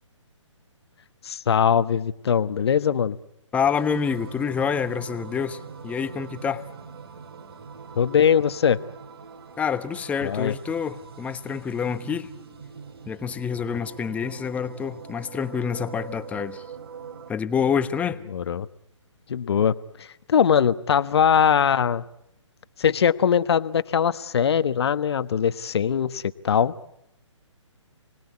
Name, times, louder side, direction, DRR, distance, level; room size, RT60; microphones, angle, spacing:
voice 1, 1.2-3.2 8.0-8.8 10.2-10.5 18.3-18.7 19.3-22.0 22.8-26.7, left 8 dB, 55° left, 13 dB, 1.2 m, -21 dB
voice 2, 3.5-6.6 9.6-12.3 13.1-16.6 17.3-18.2, left 7 dB, 10° left, 11 dB, 1.1 m, -27 dB
sound 1, 3.7-17.3, right 6 dB, 50° right, 2.9 m, -42 dB
29.5 x 20.0 x 9.7 m, 0.81 s
figure-of-eight pair, 140°, 16 cm